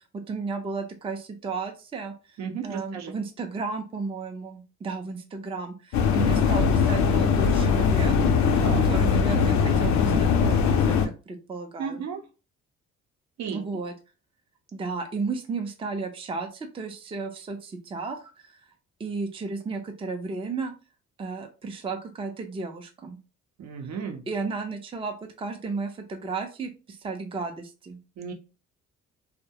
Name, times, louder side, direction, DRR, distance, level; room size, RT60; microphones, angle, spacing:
voice 1, 0.0-2.1 2.6-8.1 8.8-11.0 11.3-12.0 13.5-13.9 14.7-18.6 19.0-20.7 21.2-23.2 24.3-28.0, right 4 dB, 20° right, 5 dB, 0.4 m, -33 dB
voice 2, 2.4-3.1 8.6-8.9 11.8-12.2 13.4-13.8 23.6-24.2 28.2-28.3, right 6 dB, 65° right, 5 dB, 0.6 m, -34 dB
sound 1, 5.9-11.1, left 6 dB, 70° left, 0.5 m, -21 dB
2.2 x 2.1 x 2.7 m, 0.31 s
cardioid pair, 85°, 30 cm